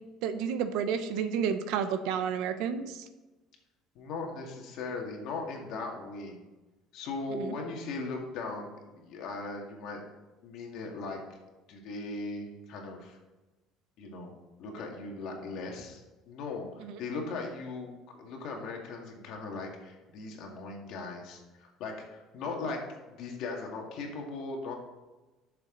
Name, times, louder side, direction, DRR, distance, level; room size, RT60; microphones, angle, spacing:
voice 1, 0.2-3.0 7.3-7.5 16.8-16.9, right 7 dB, 70° right, 10 dB, 0.8 m, -31 dB
voice 2, 4.0-6.4 6.9-10.0 10.4-11.2 11.7-13.2 14.0-14.3 14.6-22.8 23.1-24.7, left 3 dB, 55° left, 1 dB, 2.0 m, -38 dB
12.0 x 6.9 x 3.9 m, 1.1 s
cardioid pair, 175°, 0 cm